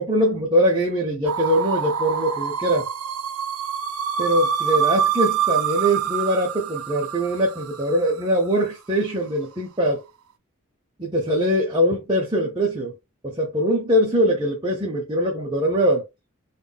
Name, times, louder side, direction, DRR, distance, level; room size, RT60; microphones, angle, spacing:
voice 1, 0.0-2.9 4.2-10.0 11.0-12.9 13.2-16.0, equal, 20° right, 0.8 m, -22 dB
sound 1, 1.3-8.2, right 8 dB, 85° right, 0.5 m, -26 dB
3.7 x 2.4 x 3.5 m
head